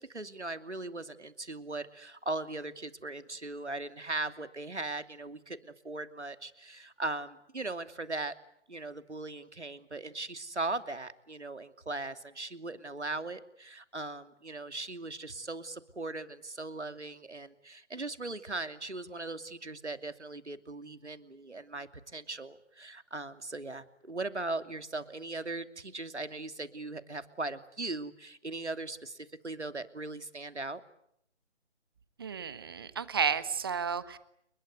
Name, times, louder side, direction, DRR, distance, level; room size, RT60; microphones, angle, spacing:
voice 1, 0.0-8.4 8.7-30.8, right 2 dB, 70° right, 10 dB, 2.8 m, -39 dB
voice 2, 32.2-34.2, right 7 dB, 20° right, 16 dB, 1.2 m, -32 dB
30.0 x 22.0 x 8.4 m, 0.73 s
figure-of-eight pair, 150°, 35 cm